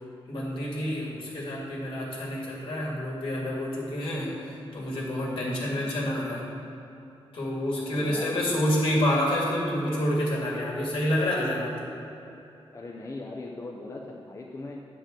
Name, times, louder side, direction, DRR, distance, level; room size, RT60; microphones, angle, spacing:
voice 1, 0.3-6.4 7.3-11.8, left 1 dB, 60° left, -4 dB, 2.2 m, -28 dB
voice 2, 5.3-5.9 7.9-8.5 12.7-14.8, left 2 dB, 30° left, -1 dB, 0.6 m, -39 dB
10.0 x 7.8 x 3.8 m, 2.9 s
wide cardioid pair, 150°, 10 cm